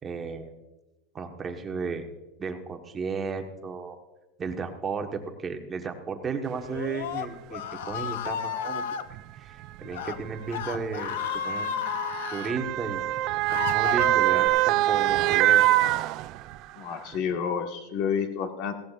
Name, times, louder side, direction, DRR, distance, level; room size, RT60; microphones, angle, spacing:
voice 1, 0.0-0.5 1.1-2.0 2.4-4.0 4.4-8.8 9.3-11.9 12.3-13.0 13.5-15.7 17.1-17.2, right 5 dB, 20° right, 4 dB, 1.3 m, -34 dB
Screaming, 6.7-9.0 9.8-10.2 10.5-12.5 13.1-14.5, left 9 dB, 80° left, 0.7 m, -33 dB
Motor vehicle (road) / Siren, 6.8-6.9 7.8-8.0 9.1-16.7 17.1-17.2, right 15 dB, 45° right, 0.4 m, -25 dB
voice 2, 16.8-18.7, left 7 dB, 50° left, 5 dB, 1.6 m, -29 dB
17.0 x 15.0 x 2.5 m, 1.0 s
supercardioid pair, 145°, 0 cm